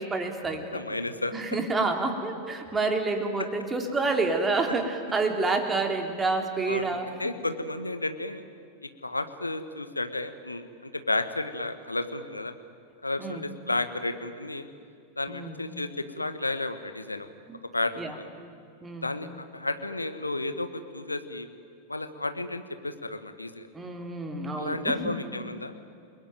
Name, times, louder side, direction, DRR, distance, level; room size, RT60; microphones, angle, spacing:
voice 1, 0.0-0.8 1.3-7.1 13.2-13.4 15.3-15.6 17.5-17.6 18.0-18.2 18.8-19.1 23.7-25.1, right 3 dB, 15° right, 4 dB, 3.2 m, -28 dB
voice 2, 0.7-1.3 3.4-3.5 6.7-6.9 7.2-8.4 8.8-12.5 13.0-14.7 15.2-17.3 17.7-18.3 19.0-21.5 21.9-23.7 24.6-25.7, left 2 dB, 85° left, 10 dB, 1.6 m, -32 dB
29.0 x 21.0 x 9.3 m, 2.4 s
figure-of-eight pair, 90°, 0 cm